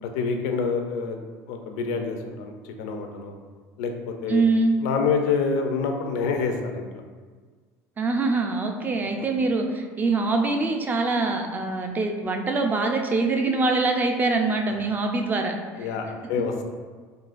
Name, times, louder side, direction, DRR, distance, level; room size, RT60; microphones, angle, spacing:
voice 1, 0.0-1.2 1.5-3.3 3.8-4.4 4.8-6.9 9.2-9.3 15.8-16.6, left 5 dB, 85° left, 4 dB, 0.4 m, -27 dB
voice 2, 4.3-4.7 8.0-15.5, right 3 dB, 25° right, 3 dB, 0.3 m, -24 dB
3.8 x 2.4 x 2.4 m, 1.5 s
cardioid pair, 120°, 8 cm